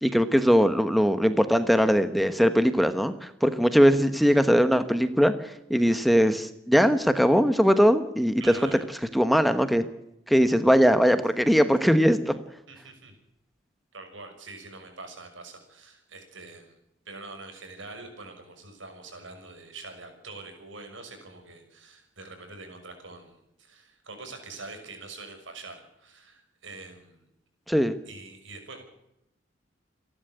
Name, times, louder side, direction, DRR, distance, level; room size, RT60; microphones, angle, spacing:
voice 1, 0.0-5.3 5.7-8.4 9.1-9.9 10.3-12.4 27.7-28.0, equal, ahead, 10 dB, 1.1 m, -21 dB
voice 2, 8.4-8.8 12.7-13.1 13.9-16.7 17.0-27.2 28.1-28.8, right 3 dB, 85° right, 5 dB, 6.2 m, -44 dB
28.0 x 11.5 x 8.1 m, 0.84 s
head